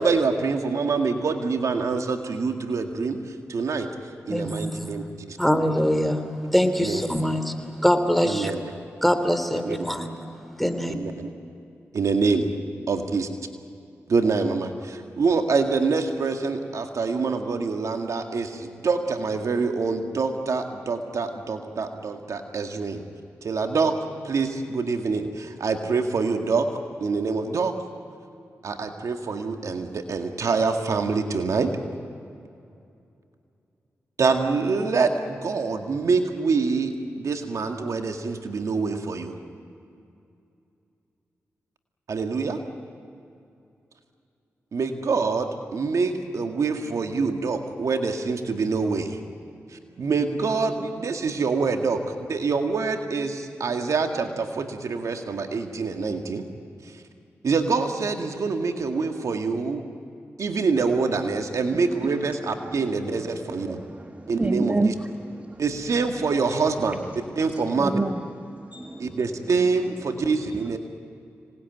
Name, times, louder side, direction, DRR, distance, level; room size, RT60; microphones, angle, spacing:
voice 1, 0.0-3.9 4.3-5.4 6.8-7.0 8.2-8.6 9.6-9.9 10.9-11.3 11.9-12.5 12.9-13.3 14.1-23.0 23.4-24.0 24.2-26.7 27.0-27.7 28.6-31.7 34.2-39.4 42.1-42.6 44.7-49.2 49.7-52.0 52.3-56.4 56.8-56.9 57.4-59.8 60.4-63.8 64.3-64.9 65.6-67.0 67.4-68.0 69.0-70.8, right 4 dB, 70° right, 5 dB, 2.0 m, -25 dB
voice 2, 4.3-4.7 5.4-6.2 6.5-7.5 7.8-8.5 9.0-10.1 10.6-10.9, equal, ahead, 8 dB, 3.1 m, -23 dB
voice 3, 63.6-64.9 65.2-65.6 67.5-68.2 68.6-69.2, right 2 dB, 25° right, 7 dB, 1.5 m, -28 dB
26.0 x 19.5 x 9.3 m, 2.6 s
supercardioid pair, 40°, 6 cm